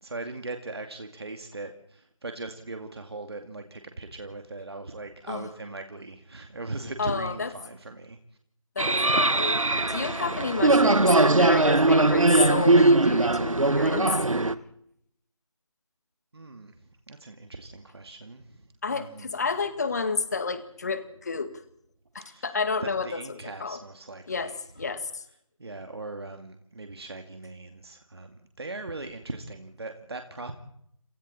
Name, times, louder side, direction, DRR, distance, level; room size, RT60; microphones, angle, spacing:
voice 1, 0.0-8.2 16.3-16.8 17.1-19.3 22.3-22.6 22.8-24.5 25.6-30.5, right 2 dB, 50° right, 5 dB, 2.4 m, -39 dB
voice 2, 7.0-7.5 8.8-14.2 18.8-21.5 22.1-23.8 24.3-25.2, left 4 dB, 30° left, 11 dB, 2.0 m, -30 dB
sound 1, 8.8-14.5, right 2 dB, 75° right, 1.6 m, -20 dB
28.5 x 28.0 x 4.4 m, 0.72 s
figure-of-eight pair, 165°, 17 cm